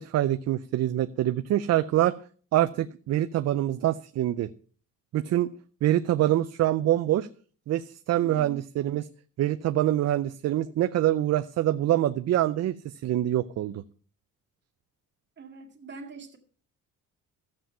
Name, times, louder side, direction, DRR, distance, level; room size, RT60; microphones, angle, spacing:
voice 1, 0.0-2.1 2.5-4.5 5.1-5.5 5.8-7.3 7.7-9.0 9.4-13.8, right 13 dB, 55° right, 11 dB, 0.5 m, -25 dB
voice 2, 8.2-8.7 15.4-16.4, right 4 dB, 35° right, 1 dB, 2.1 m, -44 dB
14.0 x 7.6 x 5.5 m, 0.42 s
cardioid pair, 160°, 32 cm